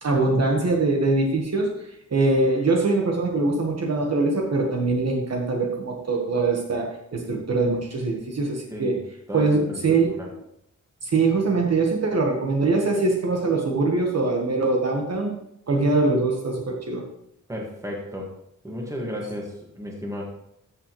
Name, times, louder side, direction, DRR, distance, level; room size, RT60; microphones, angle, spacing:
voice 1, 0.0-1.7 2.1-9.0 9.3-10.1 11.0-15.3 15.7-17.0, right 3 dB, 50° right, 1 dB, 1.4 m, -23 dB
voice 2, 9.3-9.8 10.1-10.3 17.5-18.3 18.6-20.2, left 1 dB, 10° right, -1 dB, 1.8 m, -33 dB
14.0 x 6.5 x 3.2 m, 0.77 s
wide cardioid pair, 165°, 33 cm